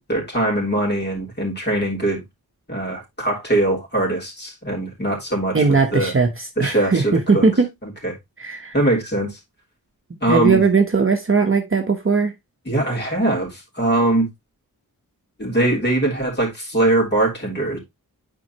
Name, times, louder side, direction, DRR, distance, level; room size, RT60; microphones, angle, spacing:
voice 1, 0.1-2.2 2.7-5.6 5.9-6.1 6.6-7.4 7.8-8.2 8.7-9.4 10.2-10.6 12.7-14.3 15.4-17.8, right 1 dB, 30° left, 3.6 m, -21 dB
voice 2, 5.5-7.7 8.4-8.7 10.3-12.3, right 4 dB, 35° right, 1.0 m, -18 dB
9.4 x 4.6 x 2.9 m
wide cardioid pair, 120°, 36 cm